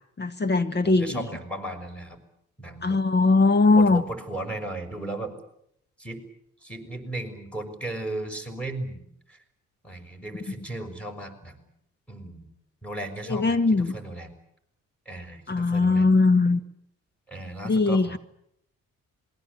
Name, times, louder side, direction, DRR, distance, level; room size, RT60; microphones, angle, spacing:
voice 1, 0.2-1.2 2.8-4.0 13.3-13.9 15.5-16.6 17.6-18.2, left 3 dB, 35° left, 12 dB, 1.4 m, -20 dB
voice 2, 0.8-2.2 2.6-3.0 3.7-5.3 6.0-6.2 6.6-9.4 9.8-11.7 12.1-12.5 12.8-14.3 15.1-16.2 17.3-18.2, right 2 dB, 5° left, 5 dB, 6.1 m, -36 dB
27.0 x 21.5 x 8.4 m, 0.75 s
cardioid pair, 90°, 30 cm